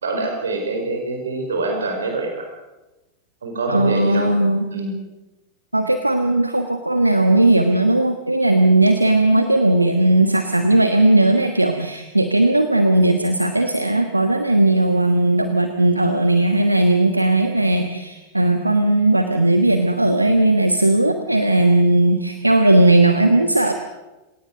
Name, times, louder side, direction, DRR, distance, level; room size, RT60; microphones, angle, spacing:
voice 1, 0.0-2.5 3.4-4.3 4.7-4.9, right 3 dB, 70° right, 3 dB, 5.0 m, -25 dB
voice 2, 3.7-4.6 5.7-23.7, right 2 dB, 85° right, 7 dB, 1.3 m, -17 dB
26.5 x 18.0 x 6.6 m, 1.1 s
figure-of-eight pair, 90°, 0 cm